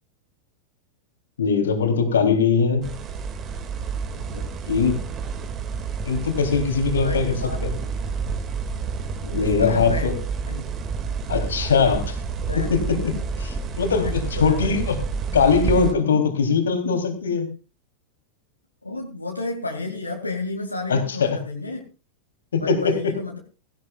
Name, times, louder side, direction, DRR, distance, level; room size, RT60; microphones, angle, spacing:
voice 1, 1.4-2.9 4.2-5.1 6.0-7.3 7.6-7.7 9.2-10.2 11.3-12.1 12.6-15.0 15.3-17.5 20.9-21.4 22.5-23.1, left 5 dB, 65° left, 7 dB, 3.5 m, -21 dB
sound 1, 2.8-15.9, right 5 dB, 30° right, 2.3 m, -29 dB
voice 2, 6.8-7.9 9.3-10.1 10.5-10.7 11.7-12.0 12.5-12.8 14.0-14.9 18.8-21.8 22.6-23.4, left 2 dB, 85° left, 0 dB, 2.7 m, -32 dB
17.5 x 17.0 x 2.5 m, 0.32 s
figure-of-eight pair, 90°, 0 cm